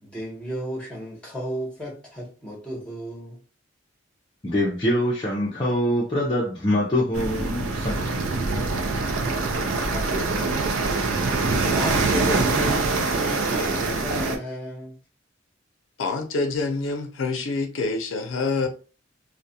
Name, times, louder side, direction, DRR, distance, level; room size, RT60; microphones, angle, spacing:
voice 1, 0.0-3.4 8.2-9.6 9.9-10.9 11.7-14.9, equal, 5° left, 0.9 m, -34 dB
voice 2, 4.4-8.2, left 1 dB, 25° left, 0.4 m, -24 dB
sound 1, 7.1-14.4, right 3 dB, 90° right, 0.4 m, -24 dB
voice 3, 16.0-18.7, left 3 dB, 85° left, 0.5 m, -26 dB
2.3 x 2.1 x 2.7 m
head